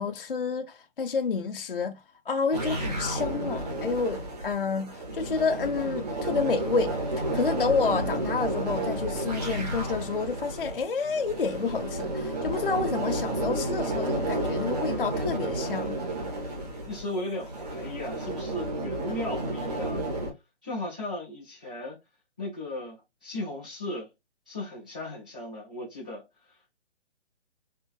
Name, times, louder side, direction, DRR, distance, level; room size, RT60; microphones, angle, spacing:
voice 1, 0.0-2.0 2.3-6.9 7.3-16.0, left 4 dB, 50° left, 0.4 m, -29 dB
sound 1, 2.5-20.3, right 1 dB, 35° right, 2.0 m, -31 dB
voice 2, 16.9-20.1 20.6-22.0 22.4-24.1 24.5-26.7, left 1 dB, 5° right, 0.6 m, -36 dB
4.4 x 3.6 x 3.1 m
hypercardioid pair, 175°, 36 cm